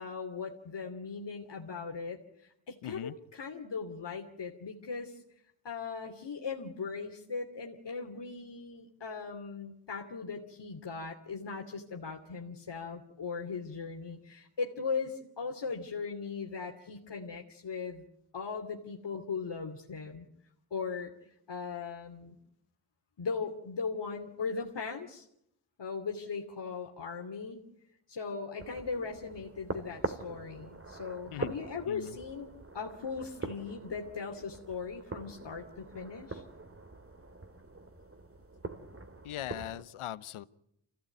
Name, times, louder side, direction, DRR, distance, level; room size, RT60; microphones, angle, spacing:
voice 1, 0.0-5.2 5.6-18.0 18.3-20.3 20.7-21.2 21.5-22.3 23.2-25.3 25.8-27.6 28.1-36.4, left 5 dB, 60° left, 2 dB, 2.8 m, -39 dB
voice 2, 2.8-3.1 31.3-32.2 39.2-40.4, left 12 dB, 85° left, 17 dB, 1.0 m, -40 dB
sound 1, 28.6-39.8, right 3 dB, 25° right, 3.0 m, -43 dB
25.5 x 17.0 x 9.2 m, 0.79 s
cardioid pair, 55°, 49 cm